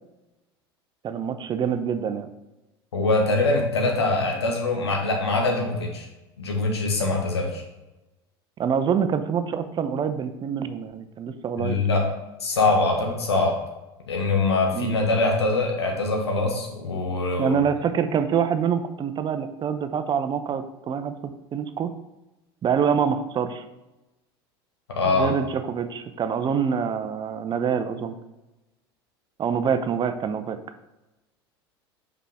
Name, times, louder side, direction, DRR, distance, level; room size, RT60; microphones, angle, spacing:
voice 1, 1.0-2.3 8.6-11.8 14.7-14.9 17.4-21.9 22.6-23.6 25.1-28.2 29.4-30.6, right 7 dB, 35° right, 10 dB, 0.6 m, -26 dB
voice 2, 2.9-6.1 6.4-7.6 11.6-12.1 12.4-13.6 14.1-17.5 24.9-25.3, left 3 dB, 90° left, 1 dB, 1.3 m, -23 dB
5.6 x 4.9 x 3.5 m, 1.0 s
hypercardioid pair, 80°, 13 cm